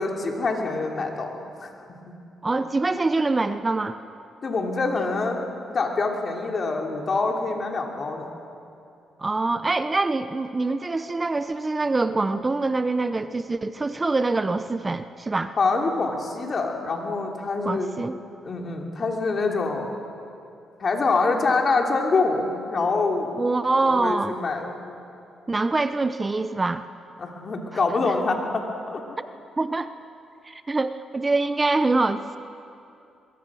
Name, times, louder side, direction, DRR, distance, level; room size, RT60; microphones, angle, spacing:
voice 1, 0.0-1.7 2.1-2.2 4.4-5.4 5.7-8.3 15.6-17.9 18.4-19.9 20.8-23.4 23.8-24.8 27.2-29.2, left 3 dB, 40° left, 1 dB, 3.1 m, -25 dB
voice 2, 2.4-4.0 9.2-15.5 17.6-18.2 23.3-24.3 25.5-26.8 29.2-29.3 29.6-29.9 30.5-32.4, right 3 dB, 25° right, 11 dB, 0.7 m, -24 dB
23.0 x 22.5 x 6.3 m, 2.6 s
cardioid pair, 95°, 0 cm